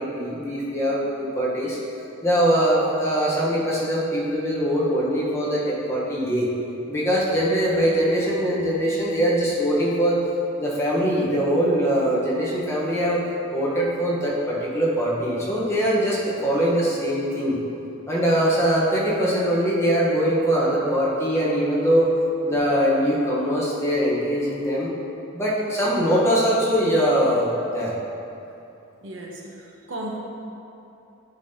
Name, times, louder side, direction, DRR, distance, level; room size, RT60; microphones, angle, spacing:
voice 1, 0.0-1.8 2.2-6.5 6.9-10.2 10.6-13.2 13.5-17.6 18.1-22.1 22.4-24.9 25.3-27.5 27.7-27.9, equal, 15° left, -6 dB, 1.0 m, -22 dB
voice 2, 29.0-30.2, right 1 dB, 70° right, -1 dB, 0.9 m, -35 dB
10.0 x 5.3 x 2.8 m, 2.8 s
head